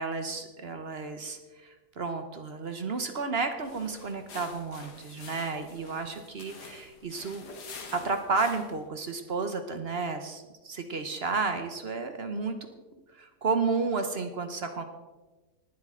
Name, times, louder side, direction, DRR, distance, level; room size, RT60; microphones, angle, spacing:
voice 1, 0.0-7.4 7.9-14.8, right 4 dB, 45° right, 7 dB, 1.0 m, -32 dB
sound 1, 3.6-8.9, left 4 dB, 80° left, 2.0 m, -47 dB
19.5 x 7.6 x 3.7 m, 1.2 s
omnidirectional pair, 1.7 m